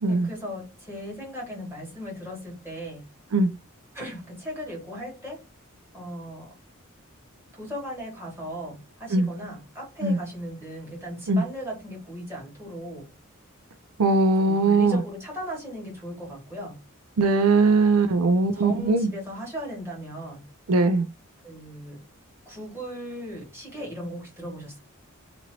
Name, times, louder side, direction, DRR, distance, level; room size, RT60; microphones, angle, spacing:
voice 1, 0.1-3.0 3.9-5.4 5.9-6.5 7.5-13.1 14.4-16.8 18.4-20.4 21.4-22.0 22.4-24.8, equal, 10° right, 1.5 m, -37 dB
voice 2, 14.0-15.0 17.2-19.1 20.7-21.1, right 3 dB, 90° right, 0.4 m, -20 dB
3.0 x 2.5 x 2.9 m
head